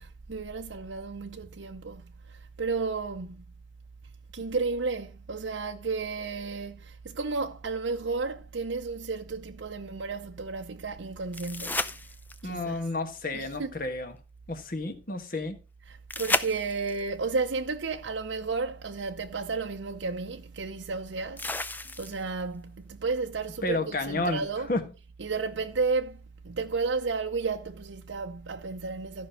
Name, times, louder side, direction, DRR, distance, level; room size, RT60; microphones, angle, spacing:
voice 1, 0.0-3.4 4.3-11.9 12.4-12.8 13.3-13.7 15.8-24.8 25.2-29.3, right 4 dB, 75° right, 0.7 m, -33 dB
sound 1, 11.3-12.6 16.1-17.1 19.0-19.1 21.4-22.4 25.3-25.4, left 2 dB, 10° left, 0.5 m, -32 dB
voice 2, 12.4-14.1 14.5-15.6 23.6-24.4 24.7-24.8, left 2 dB, 45° left, 1.5 m, -31 dB
13.5 x 5.4 x 5.6 m
head